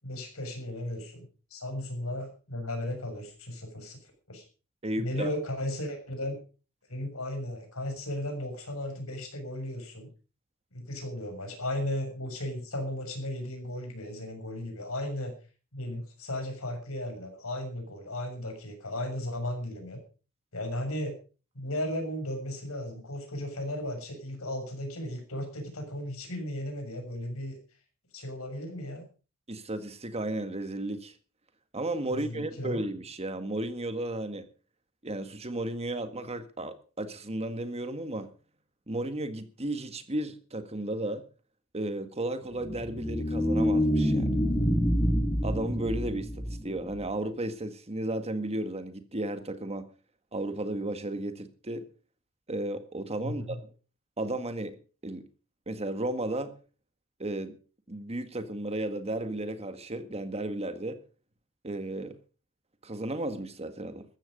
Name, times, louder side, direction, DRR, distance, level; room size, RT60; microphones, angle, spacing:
voice 1, 0.0-4.0 4.3-4.4 5.0-6.4 6.9-10.1 10.7-15.3 15.7-20.0 20.5-21.1 21.5-27.6 28.1-29.0 32.1-32.8 53.2-53.6, left 1 dB, 75° left, 6.7 m, -35 dB
voice 2, 4.8-5.3 29.5-31.1 31.7-34.5 35.0-38.3 38.9-41.2 41.7-44.3 45.4-46.3 46.6-49.9 50.3-51.8 52.5-53.7 54.2-54.8 55.0-55.2 55.7-56.6 57.2-57.5 57.9-61.0 61.6-62.1 62.8-64.0, right 1 dB, 30° right, 1.7 m, -34 dB
sound 1, 42.5-47.0, equal, 15° left, 2.7 m, -27 dB
15.0 x 13.5 x 5.3 m
head